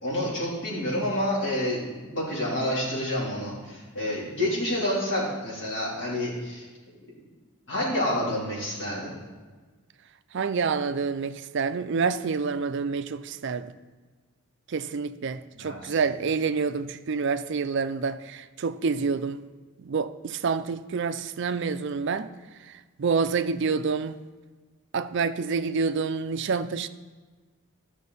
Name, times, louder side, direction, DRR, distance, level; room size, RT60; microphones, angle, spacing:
voice 1, 0.0-6.7 7.7-9.1 15.5-15.9, left 1 dB, 55° left, 3.2 m, -28 dB
voice 2, 10.3-13.7 14.7-19.4 19.8-22.3 23.0-24.2 24.9-26.9, right 5 dB, 55° right, 0.4 m, -27 dB
13.5 x 6.3 x 4.0 m
head